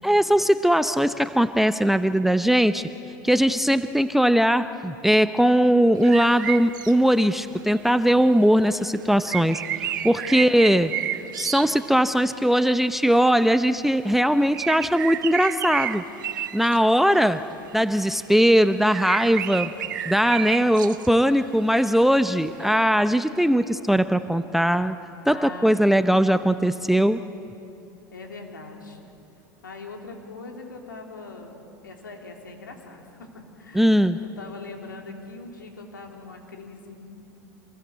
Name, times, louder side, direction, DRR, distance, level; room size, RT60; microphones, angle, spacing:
voice 1, 0.0-2.8 3.2-10.9 11.4-16.0 16.5-17.4 17.7-19.7 20.1-25.0 25.3-27.2 33.7-34.2, equal, ahead, 11 dB, 0.7 m, -20 dB
sound 1, 6.0-7.0 7.2-7.4 7.8-7.9 8.2-8.3 8.6-12.3 12.6-12.9 13.2-13.3 13.6-13.7 14.5-16.8 17.5-17.7 18.1-18.2 18.5-18.6 18.9-21.4 21.6-22.8, right 11 dB, 75° right, 1.1 m, -31 dB
voice 2, 10.1-10.8 25.3-26.0 28.1-29.1 29.6-37.0, left 3 dB, 90° left, 2 dB, 3.3 m, -41 dB
26.5 x 21.0 x 8.2 m, 2.7 s
hypercardioid pair, 85°, 11 cm